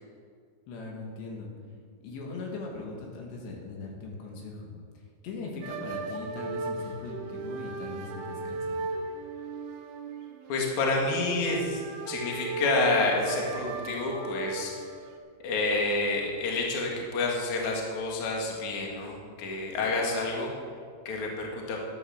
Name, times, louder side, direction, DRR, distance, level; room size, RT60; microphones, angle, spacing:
voice 1, 0.7-1.5 2.0-4.8 5.2-8.8, left 3 dB, 70° left, 0 dB, 3.8 m, -39 dB
sound 1, 5.6-15.2, right 3 dB, 80° right, 1.9 m, -36 dB
voice 2, 10.5-14.7 15.4-20.5 21.1-21.8, left 3 dB, 50° left, -1 dB, 2.8 m, -29 dB
11.5 x 11.5 x 6.5 m, 2.1 s
omnidirectional pair, 5.2 m